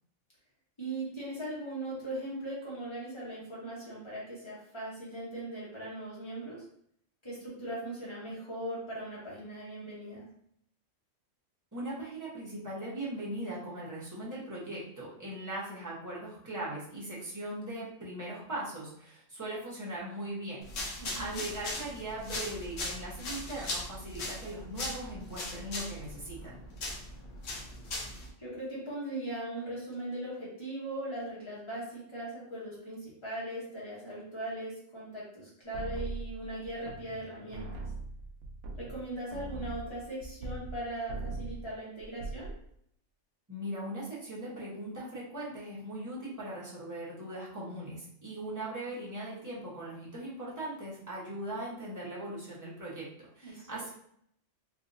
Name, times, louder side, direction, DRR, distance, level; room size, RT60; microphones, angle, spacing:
voice 1, 0.8-6.6 7.2-10.2 21.0-21.4 28.4-37.7 38.8-42.5 53.4-53.8, right 1 dB, 25° left, -6 dB, 1.3 m, -39 dB
voice 2, 11.7-26.6 43.5-53.9, right 1 dB, 15° right, -8 dB, 1.1 m, -40 dB
sound 1, 20.6-28.3, left 2 dB, 70° left, 1.1 m, -39 dB
sound 2, 35.7-37.2 37.5-40.8 41.1-41.6 42.0-42.6, right 2 dB, 75° right, 0.9 m, -40 dB
3.5 x 2.7 x 2.6 m, 0.68 s
omnidirectional pair, 1.3 m